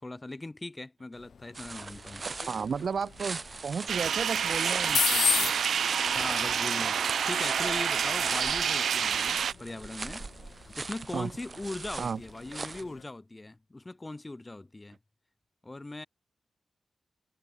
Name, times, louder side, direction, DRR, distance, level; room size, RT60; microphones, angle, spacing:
voice 1, 0.0-2.2 5.9-10.3 10.6-15.0 15.6-16.1, left 2 dB, 20° left, 5.3 m, -40 dB
sound 1, 1.1-13.0, left 7 dB, 75° left, 0.4 m, -37 dB
sound 2, 1.5-12.8, right 4 dB, 40° right, 2.5 m, -41 dB
voice 2, 2.5-5.5 11.1-11.3 12.0-12.2, right 6 dB, 65° right, 1.0 m, -33 dB
sound 3, 3.9-9.5, right 7 dB, 85° right, 0.7 m, -28 dB
wide cardioid pair, 95°, 0 cm